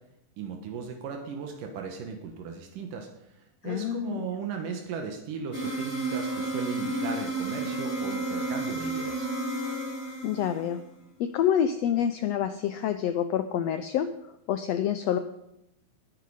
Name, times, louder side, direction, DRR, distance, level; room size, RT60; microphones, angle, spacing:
voice 1, 0.4-3.1 3.6-9.3, right 5 dB, 85° right, 3 dB, 3.0 m, -37 dB
voice 2, 3.6-4.3 10.2-10.8 11.2-14.1 14.5-15.2, left 9 dB, 85° left, 10 dB, 1.4 m, -27 dB
sound 1, 5.5-10.8, right 2 dB, 20° left, 3.2 m, -31 dB
19.0 x 9.7 x 4.9 m, 0.84 s
omnidirectional pair, 3.7 m